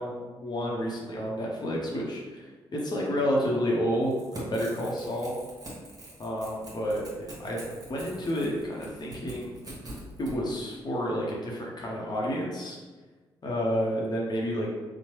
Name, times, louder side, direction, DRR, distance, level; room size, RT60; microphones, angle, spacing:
voice 1, 0.0-5.4 6.2-9.6 10.2-12.8 13.4-14.7, equal, 45° left, -2 dB, 0.7 m, -30 dB
Crackle / Tearing, 4.0-10.3, right 1 dB, 40° right, 1.0 m, -44 dB
2.9 x 2.1 x 3.0 m, 1.3 s
supercardioid pair, 50°, 10 cm